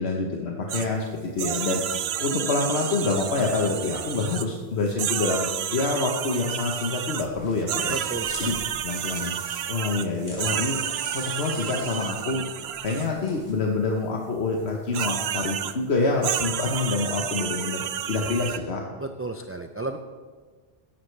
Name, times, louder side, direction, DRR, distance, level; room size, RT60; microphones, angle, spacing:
voice 1, 0.0-1.8 2.2-8.0 8.4-8.6 8.8-9.3 9.7-10.8 11.1-12.4 12.8-17.8 18.1-18.8, left 3 dB, 75° left, 0 dB, 1.4 m, -26 dB
sound 1, 0.7-0.9 1.4-4.5 4.9-7.3 7.7-13.1 14.9-15.8 16.2-18.6, right 10 dB, 75° right, 0.8 m, -30 dB
sound 2, 6.5-13.5, left 1 dB, 45° left, 4.1 m, -46 dB
voice 2, 7.9-8.6 19.0-20.0, right 2 dB, 20° right, 5 dB, 0.4 m, -33 dB
17.0 x 11.5 x 3.3 m, 1.5 s
omnidirectional pair, 1.1 m